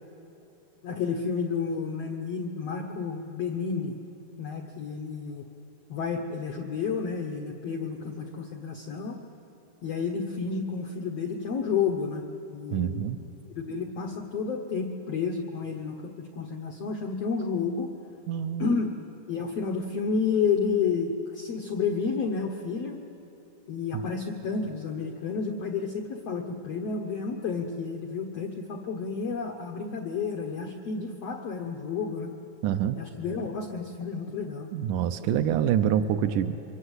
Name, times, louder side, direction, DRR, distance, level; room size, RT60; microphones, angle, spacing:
voice 1, 0.8-4.0 4.4-5.5 5.9-9.2 9.8-13.1 13.6-17.9 18.6-19.0 19.3-23.0 23.7-32.4 33.0-34.7, left 5 dB, 90° left, 3 dB, 1.4 m, -31 dB
voice 2, 12.7-13.2 18.3-18.8 23.9-24.0 32.6-33.0 34.7-36.7, right 9 dB, 85° right, 9 dB, 1.8 m, -26 dB
27.5 x 23.5 x 8.1 m, 3.0 s
omnidirectional pair, 4.6 m